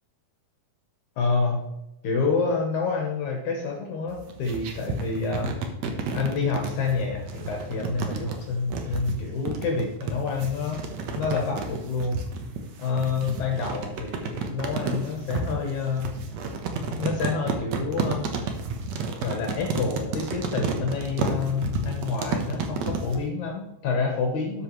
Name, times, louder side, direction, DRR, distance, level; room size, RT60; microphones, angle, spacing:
voice 1, 1.2-1.6 2.0-5.7 6.1-10.8 11.2-12.2 12.8-16.2 16.9-18.3 19.2-24.6, left 4 dB, 65° left, 1 dB, 2.4 m, -28 dB
sound 1, 4.1-23.2, right 4 dB, 65° right, 2.0 m, -31 dB
12.5 x 7.8 x 3.1 m, 0.90 s
omnidirectional pair, 3.8 m